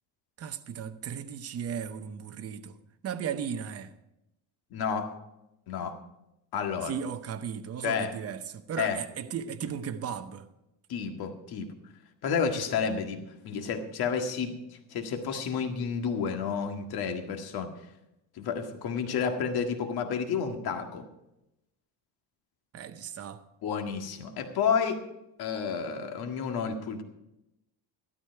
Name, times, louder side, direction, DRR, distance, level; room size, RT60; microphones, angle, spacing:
voice 1, 0.4-2.8 3.0-3.9 6.8-10.5 22.7-23.4, right 8 dB, 35° right, 0.8 m, -36 dB
voice 2, 4.7-5.1 5.7-6.0 6.5-6.9 7.8-8.1 8.8-9.0 10.9-11.7 12.2-13.2 13.4-14.6 14.9-17.7 18.4-21.0 23.6-25.0 25.4-27.0, left 6 dB, 60° left, 1.9 m, -30 dB
13.0 x 12.5 x 4.6 m
cardioid pair, 140°, 41 cm